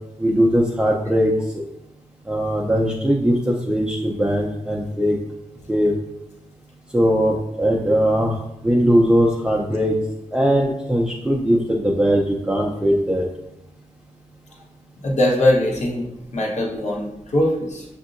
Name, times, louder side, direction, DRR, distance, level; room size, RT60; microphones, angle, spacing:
voice 1, 0.2-1.6 2.3-5.2 5.7-5.9 6.9-10.0 10.3-13.2, equal, 5° right, -3 dB, 0.5 m, -20 dB
voice 2, 15.0-17.8, left 1 dB, 70° left, -2 dB, 1.1 m, -21 dB
6.4 x 2.7 x 2.5 m, 0.86 s
wide cardioid pair, 100°, 12 cm